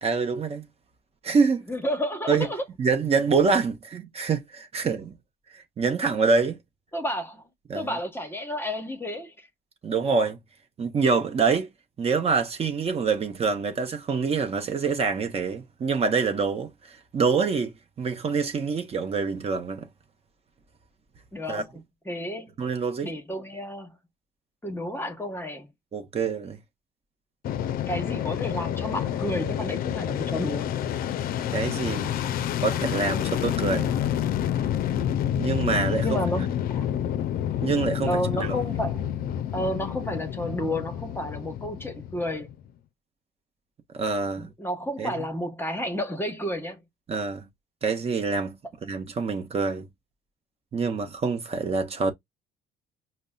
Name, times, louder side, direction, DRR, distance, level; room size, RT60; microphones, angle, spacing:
voice 1, 0.0-0.6 1.2-1.7 2.3-2.5 2.8-5.1 5.5-6.6 7.7-8.0 9.8-10.4 10.8-11.7 12.0-19.9 21.5-21.6 22.6-23.1 25.9-26.6 31.5-32.1 32.6-33.9 35.4-36.5 37.6-38.6 43.9-44.5 45.0-45.2 47.1-47.4 47.8-48.6 48.8-49.8 50.7-52.1, right 5 dB, 35° right, 0.9 m, -26 dB
voice 2, 1.7-2.6 6.9-7.4 7.7-9.5 21.3-22.5 23.0-23.9 24.6-25.7 27.9-30.8 36.0-36.9 38.1-39.1 39.5-42.5 44.4-46.8, equal, 15° left, 1.0 m, -31 dB
Fixed-wing aircraft airplane, 27.4-42.6, left 10 dB, 60° left, 0.4 m, -28 dB
5.2 x 2.1 x 2.3 m
cardioid pair, 110°, 17 cm